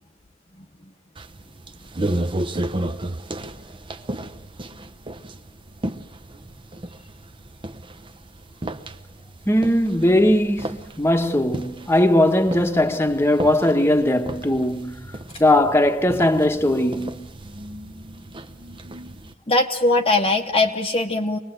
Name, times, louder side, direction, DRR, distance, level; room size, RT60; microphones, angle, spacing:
sound 1, 1.2-19.3, right 1 dB, 25° right, 0.8 m, -34 dB
voice 1, 9.5-15.1 15.4-17.3, left 1 dB, 15° left, 1.2 m, -19 dB
voice 2, 19.5-21.4, left 2 dB, 30° left, 1.0 m, -20 dB
24.5 x 20.0 x 7.9 m
head